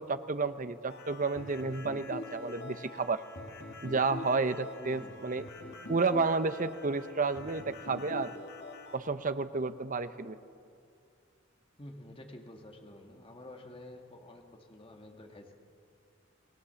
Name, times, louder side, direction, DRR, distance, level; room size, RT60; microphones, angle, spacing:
voice 1, 0.0-3.2 3.8-5.4 5.9-8.3 8.9-10.4, right 4 dB, 40° right, 11 dB, 0.9 m, -31 dB
sound 1, 0.9-9.0, left 2 dB, 60° left, 2.8 m, -45 dB
voice 2, 4.8-5.3 11.8-15.5, left 1 dB, 30° left, 2 dB, 2.2 m, -49 dB
28.5 x 20.0 x 7.1 m, 2.4 s
head